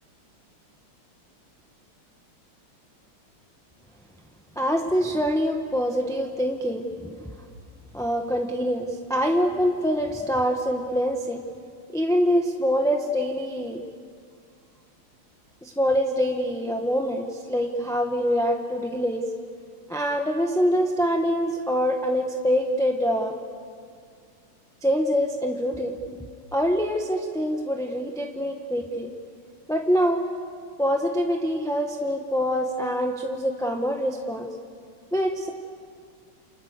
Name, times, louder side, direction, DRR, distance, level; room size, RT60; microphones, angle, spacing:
voice 1, 4.5-7.3 7.9-11.4 11.9-13.8 15.6-19.2 19.9-23.4 24.8-26.0 26.5-29.1 29.7-30.2 30.8-34.5 35.1-35.5, equal, ahead, 2 dB, 1.3 m, -25 dB
29.5 x 28.0 x 6.8 m, 2.2 s
omnidirectional pair, 2.4 m